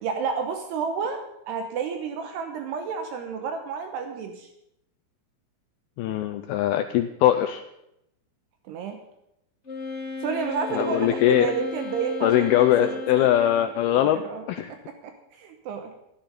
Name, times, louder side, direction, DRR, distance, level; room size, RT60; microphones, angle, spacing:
voice 1, 0.0-1.2 1.5-4.5 8.7-9.0 10.2-13.3 13.9-14.4 15.0-15.9, right 5 dB, 75° right, 5 dB, 3.0 m, -30 dB
voice 2, 6.0-7.6 10.7-11.5 12.2-14.2 14.5-14.7, left 12 dB, 85° left, 8 dB, 2.2 m, -21 dB
Wind instrument woodwind instrument, 9.6-13.7, left 3 dB, 40° left, 0.9 m, -35 dB
13.5 x 13.0 x 5.2 m, 0.82 s
omnidirectional pair, 5.1 m